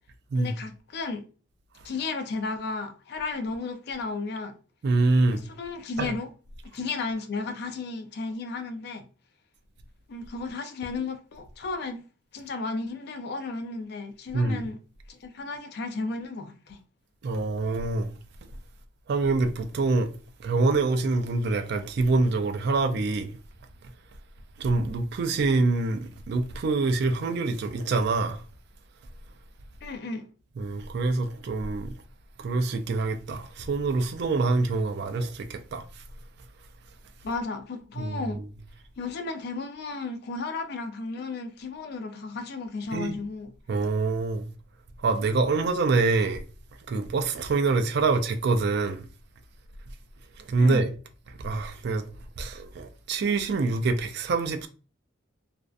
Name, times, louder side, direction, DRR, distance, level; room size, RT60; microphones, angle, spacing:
voice 1, 0.3-1.2 1.8-4.5 5.3-6.3 6.7-9.0 10.1-12.0 12.3-14.8 15.1-16.8 29.8-30.2 37.2-38.4 39.0-43.5 50.6-50.8, left 3 dB, 55° left, 0.4 m, -34 dB
voice 2, 4.8-5.4 6.0-6.1 14.3-14.6 17.2-18.1 19.1-20.1 20.4-23.3 24.6-28.4 30.6-31.9 32.4-35.8 38.0-38.5 42.9-43.2 43.7-44.4 45.0-46.4 46.9-49.0 50.5-50.9 51.4-52.1 52.4-54.7, right 3 dB, 55° right, 0.3 m, -25 dB
2.5 x 2.2 x 2.3 m
head